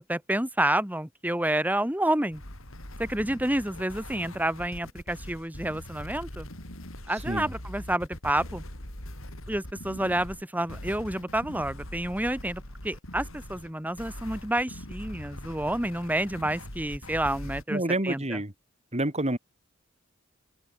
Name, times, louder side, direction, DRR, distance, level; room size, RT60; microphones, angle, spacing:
voice 1, 0.0-2.4 3.0-6.5 7.1-8.6 9.5-18.4, right 1 dB, 10° right, 2.1 m, -29 dB
sound 1, 2.3-17.6, left 1 dB, 70° left, 7.8 m, -42 dB
voice 2, 17.7-18.5 18.9-19.4, right 1 dB, 30° right, 4.1 m, -28 dB
open air
head